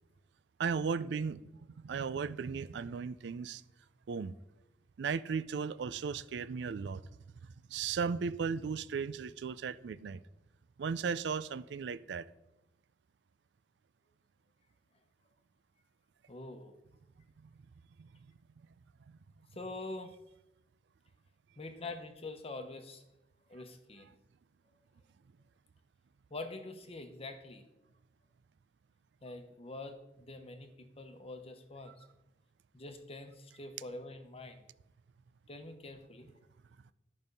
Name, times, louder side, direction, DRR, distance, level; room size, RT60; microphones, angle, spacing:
voice 1, 0.6-1.4 1.8-3.6 4.1-4.3 5.0-7.0 7.7-10.2 10.8-12.3 31.9-32.0, right 5 dB, 70° right, 16 dB, 0.4 m, -36 dB
voice 2, 16.3-16.7 19.5-20.1 21.6-23.0 23.5-24.1 26.3-27.7 29.2-31.9 32.7-34.7 35.5-36.4, left 2 dB, 35° left, 7 dB, 0.9 m, -45 dB
11.0 x 5.4 x 5.3 m, 0.91 s
head